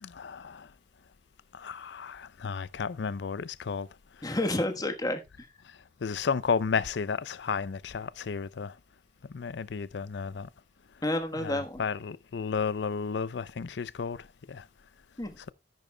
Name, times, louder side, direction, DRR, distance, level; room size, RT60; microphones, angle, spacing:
voice 1, 0.0-0.7 1.5-3.9 4.2-4.4 6.0-8.7 9.3-10.5 11.3-14.6, left 5 dB, 75° left, 0.5 m, -33 dB
voice 2, 4.2-5.5 11.0-11.8 15.2-15.4, left 1 dB, 20° left, 1.3 m, -30 dB
13.0 x 10.5 x 2.2 m
head